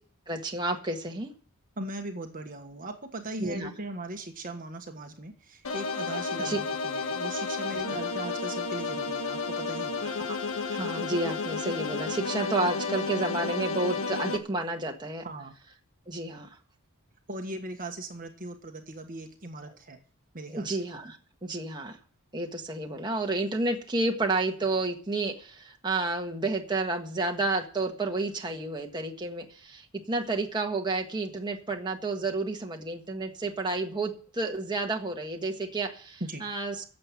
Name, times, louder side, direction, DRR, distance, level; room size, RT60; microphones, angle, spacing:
voice 1, 0.3-1.3 3.4-3.7 6.4-6.6 7.7-7.8 10.0-10.4 10.6-15.2 16.1-16.5 20.5-21.2 21.4-22.0 22.3-36.8, right 2 dB, 20° right, 1 dB, 1.6 m, -31 dB
voice 2, 1.8-10.1 15.2-15.5 17.3-20.0 20.3-20.8 36.2-36.4, right 2 dB, 40° right, 4 dB, 1.5 m, -39 dB
sound 1, 5.6-14.4, left 4 dB, 65° left, 1.5 m, -32 dB
12.0 x 7.8 x 8.9 m, 0.44 s
head